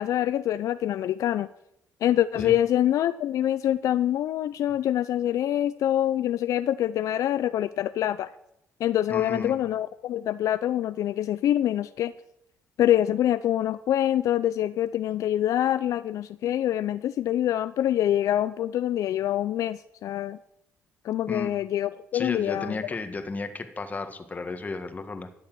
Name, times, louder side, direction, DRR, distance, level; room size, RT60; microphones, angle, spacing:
voice 1, 0.0-1.5 2.0-8.3 8.8-12.1 12.8-20.4 21.0-22.8, left 11 dB, 70° left, 14 dB, 0.5 m, -25 dB
voice 2, 9.1-9.6 21.3-21.5 22.1-25.3, left 3 dB, 30° left, 9 dB, 1.6 m, -33 dB
13.5 x 7.1 x 9.2 m, 0.80 s
cardioid pair, 95°, 6 cm